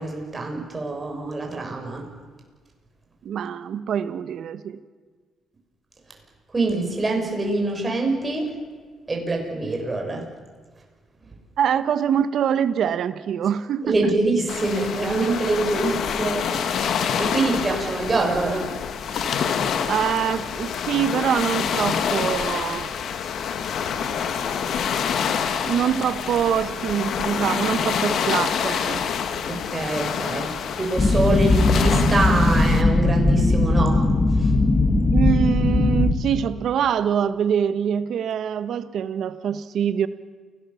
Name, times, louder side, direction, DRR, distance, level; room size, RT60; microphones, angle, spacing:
voice 1, 0.0-2.1 6.5-8.5 9.1-10.3 13.8-18.8 19.4-19.5 29.5-34.0 34.4-34.5, right 2 dB, 25° right, 1 dB, 6.7 m, -25 dB
voice 2, 3.2-4.8 11.6-14.1 19.9-22.9 25.7-29.0 35.1-40.1, right 8 dB, 70° right, 12 dB, 1.3 m, -24 dB
sound 1, 14.5-32.8, left 7 dB, 70° left, 1.9 m, -27 dB
sound 2, 31.0-36.1, left 2 dB, 25° left, 2.9 m, -19 dB
29.0 x 18.5 x 7.1 m, 1.5 s
cardioid pair, 90°, 0 cm